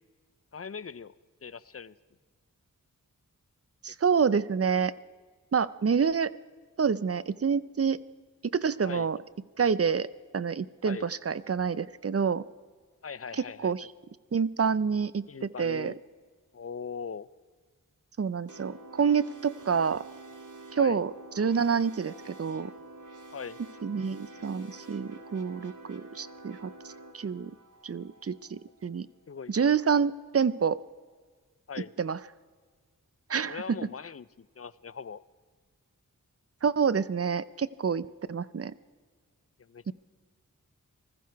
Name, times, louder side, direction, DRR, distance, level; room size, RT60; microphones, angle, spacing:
voice 1, 0.5-1.1 1.4-2.0 4.1-4.2 8.8-9.1 10.8-11.1 13.0-13.9 15.3-16.0 16.5-17.3 20.8-21.0 23.3-23.6 29.3-29.5 31.7-31.9 33.5-35.2 39.6-39.9, left 6 dB, 45° left, 18 dB, 0.5 m, -40 dB
voice 2, 3.8-4.9 5.5-6.3 6.8-8.0 8.5-9.2 9.6-10.1 10.3-12.4 13.4-13.9 14.3-15.9 18.2-20.0 20.7-21.1 21.4-22.7 23.8-26.7 27.1-27.5 27.8-29.1 29.5-30.8 32.0-32.2 33.3-33.8 36.6-38.7 39.9-40.0, right 6 dB, 45° right, 18 dB, 0.5 m, -27 dB
sound 1, 18.5-29.0, right 2 dB, 60° right, 1.8 m, -48 dB
20.0 x 14.5 x 4.6 m, 1.5 s
wide cardioid pair, 60°, 34 cm